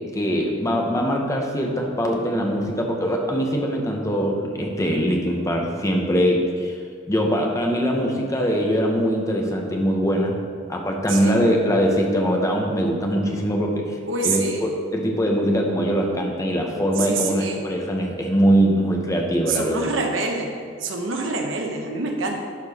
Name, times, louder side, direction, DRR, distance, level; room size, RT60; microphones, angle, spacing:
voice 1, 0.1-6.7 7.1-10.4 10.7-19.9, equal, 15° left, 1 dB, 0.9 m, -22 dB
voice 2, 14.1-14.7 17.0-17.6 19.5-20.5 20.8-22.4, right 3 dB, 65° right, 2 dB, 1.0 m, -26 dB
11.5 x 4.4 x 4.3 m, 2.2 s
head